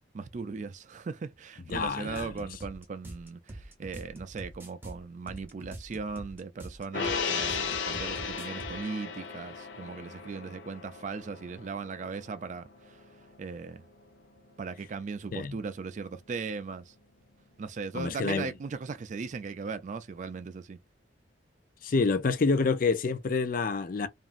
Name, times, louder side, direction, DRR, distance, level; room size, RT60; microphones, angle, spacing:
voice 1, 0.1-13.0 13.4-13.8 14.6-16.9 17.6-20.8, right 4 dB, 40° right, 0.3 m, -38 dB
voice 2, 1.7-2.5 15.3-15.6 17.9-18.5 21.8-24.1, left 4 dB, 50° left, 0.4 m, -28 dB
sound 1, 1.7-8.8, right 1 dB, 10° right, 0.7 m, -44 dB
Gong, 6.9-13.6 13.9-14.0, left 5 dB, 85° left, 0.7 m, -36 dB
2.9 x 2.5 x 2.4 m
head